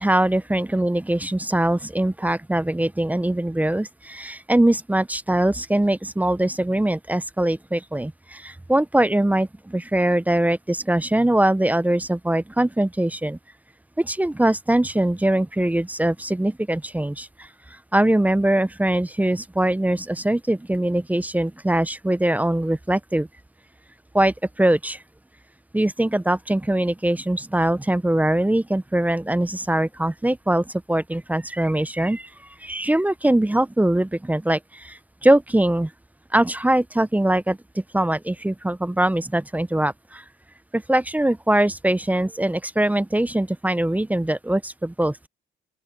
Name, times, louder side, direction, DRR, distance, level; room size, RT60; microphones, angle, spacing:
voice 1, 0.0-13.4 14.0-23.3 24.1-25.0 25.7-32.3 32.6-35.9 36.3-40.2 40.7-45.2, right 1 dB, 10° right, 0.7 m, -22 dB
open air
cardioid pair, 90°, 20 cm